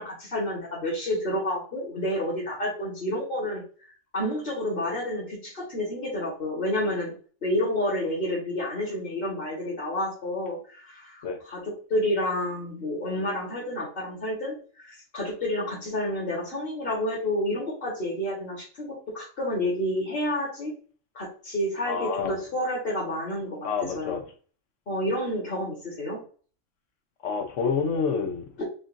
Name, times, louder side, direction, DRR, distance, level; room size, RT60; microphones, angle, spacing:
voice 1, 0.0-3.6 4.1-7.2 7.4-11.6 11.9-20.7 21.1-24.2 24.9-26.2 28.6-28.7, left 1 dB, 50° left, 1.7 m, -29 dB
voice 2, 21.8-22.3 23.6-24.2 27.2-28.5, left 5 dB, 90° left, 1.2 m, -28 dB
5.5 x 2.6 x 2.6 m
omnidirectional pair, 1.2 m